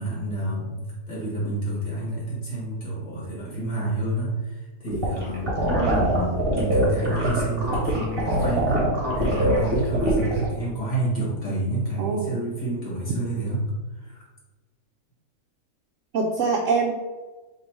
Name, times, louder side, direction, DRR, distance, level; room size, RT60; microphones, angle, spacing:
voice 1, 0.0-8.8 9.1-13.6 14.0-14.2, right 2 dB, 30° left, -7 dB, 1.6 m, -29 dB
sound 1, 4.9-10.4, right 1 dB, 40° right, 1.3 m, -23 dB
voice 2, 5.7-6.0 12.0-12.4 16.1-16.9, right 4 dB, 70° right, 0 dB, 0.8 m, -24 dB
4.0 x 2.9 x 4.6 m, 1.3 s
omnidirectional pair, 1.7 m